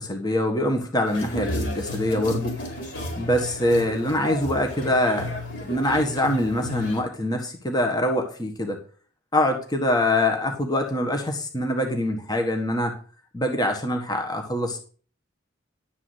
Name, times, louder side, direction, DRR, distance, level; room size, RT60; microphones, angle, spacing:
voice 1, 0.0-2.6 3.2-5.3 5.6-8.8 9.3-12.9 13.3-14.8, left 1 dB, 20° left, 3 dB, 1.5 m, -24 dB
sound 1, 1.0-7.0, left 1 dB, 55° left, 4.2 m, -33 dB
11.5 x 4.8 x 8.0 m, 0.41 s
head